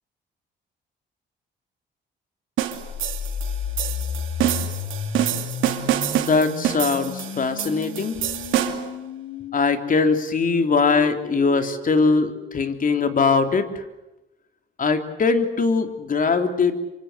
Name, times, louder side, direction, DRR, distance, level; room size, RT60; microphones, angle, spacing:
sound 1, 2.6-9.0, right 12 dB, 90° right, 2.6 m, -26 dB
sound 2, 2.7-12.6, left 8 dB, 65° left, 1.9 m, -33 dB
voice 1, 6.2-8.2 9.5-13.7 14.8-16.7, left 4 dB, 45° left, 7 dB, 3.4 m, -21 dB
27.0 x 25.0 x 8.1 m, 0.96 s
cardioid pair, 90°, 20 cm